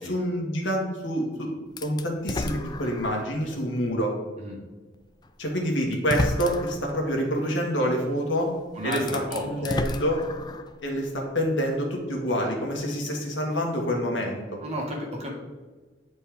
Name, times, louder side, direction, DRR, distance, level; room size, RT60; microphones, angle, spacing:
voice 1, 0.0-1.5 1.8-4.1 5.4-8.5 8.8-10.2 10.8-14.6, equal, 85° left, 0 dB, 1.7 m, -27 dB
sound 1, 1.8-3.4 3.9-4.0 5.2-5.3 5.9-6.9 8.3-8.4 8.8-10.8, left 2 dB, 25° left, 0.3 m, -32 dB
voice 2, 8.7-9.7 14.6-15.3, equal, 35° right, -1 dB, 1.6 m, -33 dB
9.4 x 4.4 x 3.5 m, 1.3 s
head